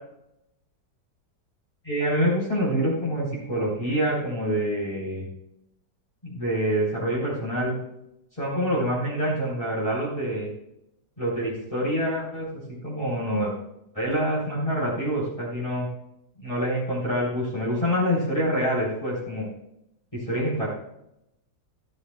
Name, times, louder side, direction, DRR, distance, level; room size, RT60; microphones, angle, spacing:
voice 1, 1.8-5.3 6.2-7.8 8.3-10.5 11.2-13.5 13.9-15.9 16.4-19.5 20.3-20.7, equal, 15° left, -6 dB, 4.0 m, -26 dB
14.5 x 13.0 x 2.3 m, 0.83 s
omnidirectional pair, 1.9 m